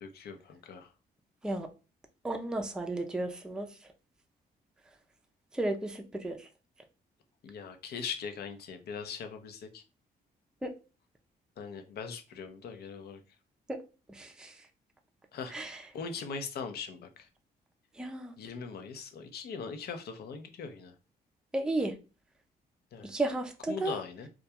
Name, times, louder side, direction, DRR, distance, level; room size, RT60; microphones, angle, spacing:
voice 1, 0.0-0.9 7.4-9.8 11.6-13.2 15.3-15.6 15.9-17.3 18.4-20.9 22.9-23.2 23.7-24.3, left 5 dB, 65° left, 0.5 m, -40 dB
voice 2, 2.2-3.8 5.5-6.5 10.6-10.7 13.7-13.8 14.1-14.6 15.5-15.8 17.9-18.3 21.5-21.9 23.0-24.0, right 2 dB, 5° right, 0.4 m, -33 dB
2.3 x 2.2 x 2.8 m
cardioid pair, 70°, 17 cm